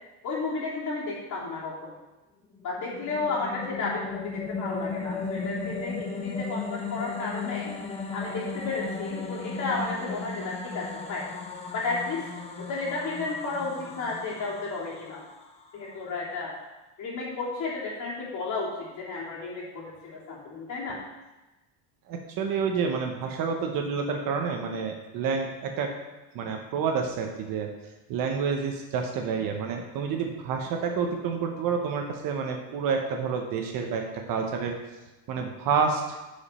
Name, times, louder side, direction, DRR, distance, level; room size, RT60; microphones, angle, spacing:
voice 1, 0.2-1.9 2.6-7.7 8.1-11.3 11.7-12.2 12.6-15.2 15.7-16.6 17.0-18.7 19.0-21.0, left 3 dB, 35° left, -5 dB, 2.9 m, -33 dB
sound 1, 2.5-15.9, left 4 dB, 15° left, 0.6 m, -36 dB
voice 2, 22.1-25.9 26.3-27.7 28.1-34.7 35.3-36.2, right 5 dB, 45° right, 3 dB, 1.0 m, -29 dB
10.5 x 5.3 x 4.2 m, 1.1 s
cardioid pair, 155°, 48 cm